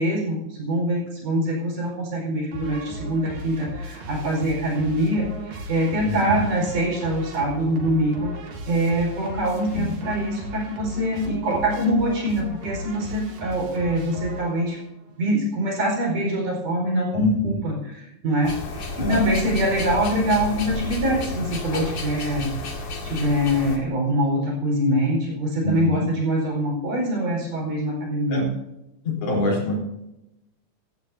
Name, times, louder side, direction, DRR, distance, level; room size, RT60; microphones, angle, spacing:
voice 1, 0.0-8.3 8.7-14.8 15.2-17.8 18.2-22.5 23.0-28.5, equal, 70° right, -1 dB, 6.4 m, -24 dB
sound 1, 2.5-14.9, equal, 90° right, 4.1 m, -36 dB
voice 2, 6.0-6.4 9.7-9.9 17.1-17.6 19.0-19.2 25.6-26.1 28.3-28.5 29.0-29.7, left 1 dB, 70° left, -1 dB, 5.6 m, -25 dB
sound 2, 18.4-23.8, left 2 dB, 50° left, 2.9 m, -31 dB
16.0 x 14.0 x 2.8 m, 0.90 s
omnidirectional pair, 3.8 m